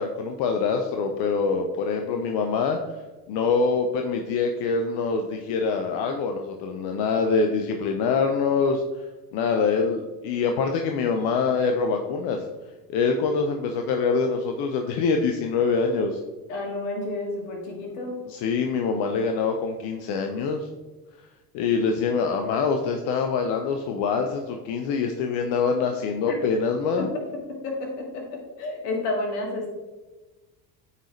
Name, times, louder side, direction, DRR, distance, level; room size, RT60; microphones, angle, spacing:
voice 1, 0.0-3.0 3.3-8.8 9.3-12.5 12.9-16.2 18.3-20.7 21.5-27.1, left 5 dB, 60° left, 4 dB, 0.8 m, -25 dB
voice 2, 16.5-18.2 27.0-29.7, left 2 dB, 75° left, 0 dB, 1.9 m, -31 dB
8.9 x 4.1 x 3.2 m, 1.2 s
hypercardioid pair, 70°, 48 cm